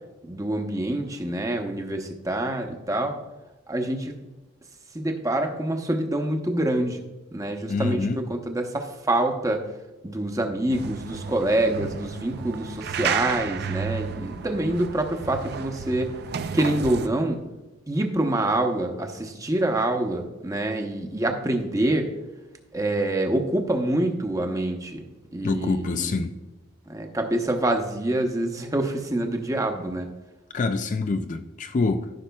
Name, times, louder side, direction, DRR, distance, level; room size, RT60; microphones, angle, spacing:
voice 1, 0.2-3.2 3.7-4.3 4.9-7.0 7.3-9.7 10.0-16.1 16.5-17.4 17.9-22.1 22.7-26.2 26.9-30.1, right 1 dB, 15° right, 0.7 m, -26 dB
voice 2, 7.7-8.2 25.4-26.3 30.5-32.1, left 3 dB, 40° left, 0.4 m, -26 dB
sound 1, 10.7-17.1, right 7 dB, 50° right, 0.4 m, -32 dB
14.0 x 6.0 x 2.3 m
head